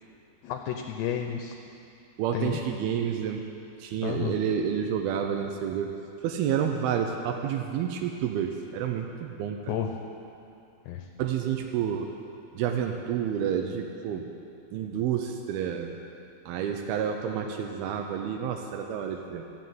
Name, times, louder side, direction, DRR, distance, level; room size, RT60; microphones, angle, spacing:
voice 1, 0.4-1.5 2.3-2.6 4.0-4.4 9.7-10.0 10.9-11.1, left 9 dB, 75° left, 3 dB, 2.7 m, -31 dB
voice 2, 2.2-3.4 3.8-5.9 6.2-9.6 11.2-12.1 12.5-14.3 14.7-16.0 16.5-19.4, right 8 dB, 80° right, 3 dB, 2.3 m, -29 dB
13.5 x 9.7 x 9.2 m, 2.7 s
omnidirectional pair, 5.2 m